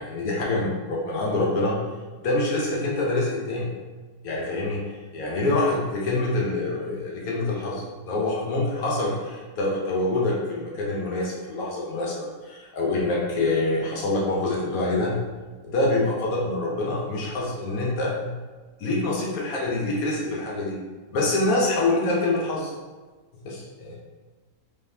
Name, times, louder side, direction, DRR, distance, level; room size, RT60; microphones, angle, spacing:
voice 1, 0.0-1.8 2.2-3.7 4.2-15.2 15.6-18.3 18.8-20.8 21.1-22.7 23.4-24.0, left 2 dB, 65° left, -4 dB, 1.2 m, -26 dB
3.8 x 3.6 x 2.7 m, 1.3 s
omnidirectional pair, 1.7 m